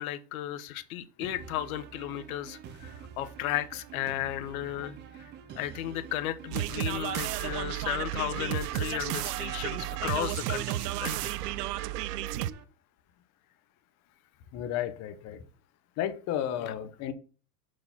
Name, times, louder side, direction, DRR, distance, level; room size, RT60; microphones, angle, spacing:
voice 1, 0.0-11.2 16.6-16.7, left 13 dB, 65° left, 12 dB, 1.0 m, -35 dB
sound 1, 1.2-12.6, right 8 dB, 25° right, 0.6 m, -47 dB
Dust to Dust Rap Example, 6.5-12.5, right 14 dB, 80° right, 0.6 m, -32 dB
voice 2, 14.5-15.4 16.0-17.1, left 10 dB, 35° left, 11 dB, 1.0 m, -33 dB
6.0 x 4.8 x 5.6 m, 0.38 s
supercardioid pair, 140°, 47 cm